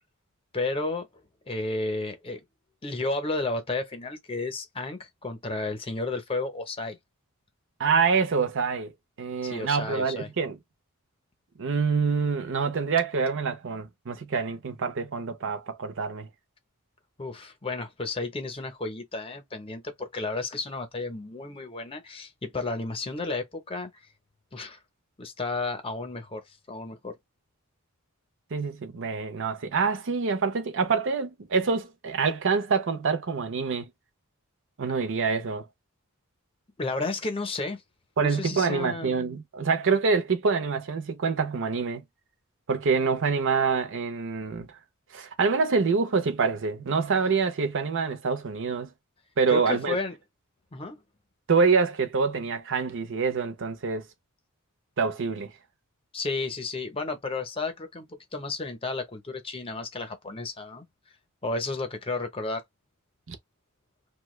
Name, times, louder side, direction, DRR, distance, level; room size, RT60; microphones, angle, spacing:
voice 1, 0.5-1.1 1.5-2.4 2.8-7.0 9.4-10.3 17.2-23.9 24.5-24.8 25.2-27.2 36.8-37.8 38.2-39.2 49.5-50.2 50.7-51.0 56.1-60.9 61.4-62.6, left 3 dB, 25° left, 0.7 m, -32 dB
voice 2, 7.8-8.9 9.2-10.6 11.6-16.3 28.5-33.9 34.8-35.6 38.2-42.0 42.7-44.7 45.1-48.9 49.4-50.0 51.5-54.0 55.0-55.5 63.3-63.4, right 5 dB, 60° right, 0.6 m, -26 dB
2.7 x 2.2 x 3.0 m
head